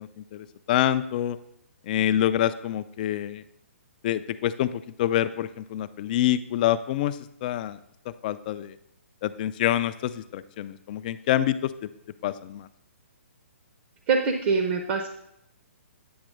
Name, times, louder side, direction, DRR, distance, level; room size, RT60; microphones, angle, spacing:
voice 1, 0.0-1.4 1.9-3.4 4.0-7.8 8.2-8.8 9.2-11.7 12.2-12.7, left 12 dB, 40° left, 13 dB, 0.4 m, -26 dB
voice 2, 14.1-15.1, right 5 dB, 40° right, 5 dB, 0.8 m, -24 dB
8.8 x 3.0 x 6.4 m, 0.76 s
hypercardioid pair, 145°, 7 cm